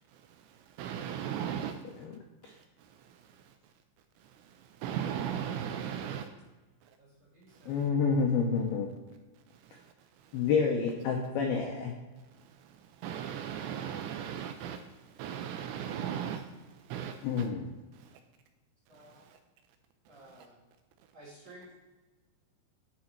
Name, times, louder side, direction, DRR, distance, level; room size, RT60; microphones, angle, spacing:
voice 1, 0.1-1.8 2.4-3.5 4.2-6.3 7.5-7.7 9.5-9.9 10.2-10.5 12.4-17.5 17.9-18.2 19.0-19.4 20.3-20.5, right 9 dB, 85° right, 7 dB, 2.6 m, -39 dB
voice 2, 7.0-7.8 18.9-19.2 20.1-20.6 21.1-21.7, right 1 dB, 60° right, -7 dB, 1.8 m, -54 dB
voice 3, 7.7-8.9 10.3-11.9 17.2-17.7, left 5 dB, 90° left, 2 dB, 2.1 m, -28 dB
10.5 x 4.8 x 4.4 m, 1.2 s
omnidirectional pair, 5.4 m